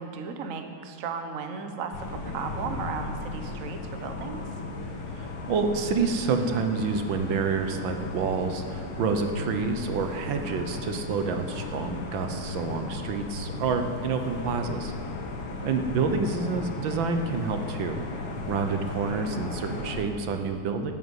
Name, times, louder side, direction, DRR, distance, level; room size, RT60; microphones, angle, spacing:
voice 1, 0.0-4.5 15.6-15.8, right 5 dB, 50° right, 6 dB, 1.1 m, -35 dB
sound 1, 1.9-20.0, left 3 dB, 80° left, 2.3 m, -36 dB
voice 2, 5.1-14.9 15.6-20.9, right 4 dB, 75° right, 6 dB, 1.7 m, -28 dB
13.5 x 9.1 x 8.1 m, 2.4 s
omnidirectional pair, 2.2 m